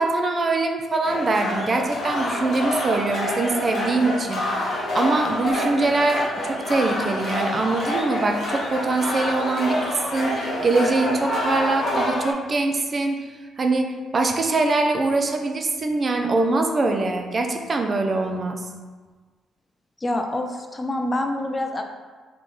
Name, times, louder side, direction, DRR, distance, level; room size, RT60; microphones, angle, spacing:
voice 1, 0.0-4.5 4.9-13.3 13.6-13.9 14.1-18.7, right 3 dB, 35° right, 4 dB, 0.5 m, -23 dB
sound 1, 1.0-12.3, left 1 dB, 60° left, 1.2 m, -27 dB
voice 2, 20.0-21.8, left 1 dB, 25° left, 4 dB, 0.4 m, -26 dB
3.8 x 3.7 x 3.1 m, 1.4 s
cardioid pair, 90°, 0 cm